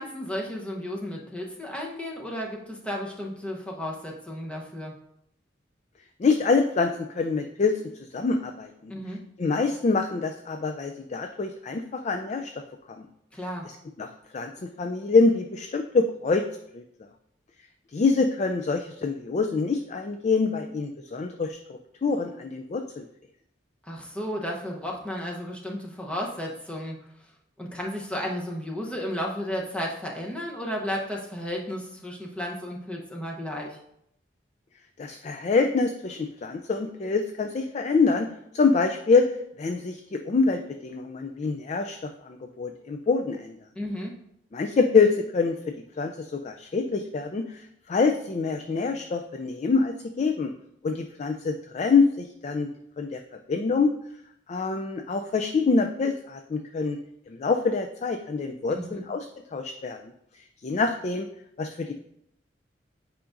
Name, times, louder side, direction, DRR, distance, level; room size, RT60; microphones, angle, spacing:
voice 1, 0.0-4.9 8.9-9.2 13.3-13.7 23.8-27.0 27.6-33.8 43.7-44.1 58.7-59.0, equal, 5° left, -2 dB, 0.8 m, -33 dB
voice 2, 6.2-7.8 8.1-8.9 9.4-12.5 13.0-13.1 14.0-14.1 14.3-16.4 16.7-16.8 17.9-23.1 35.0-38.3 38.5-39.3 39.6-43.6 44.5-45.6 45.9-50.5 50.8-52.7 53.0-53.2 53.5-53.9 54.5-57.0 57.3-59.3 59.5-60.0 60.6-61.3 61.6-61.9, left 4 dB, 35° left, 5 dB, 0.3 m, -25 dB
8.6 x 4.9 x 2.5 m, 0.75 s
head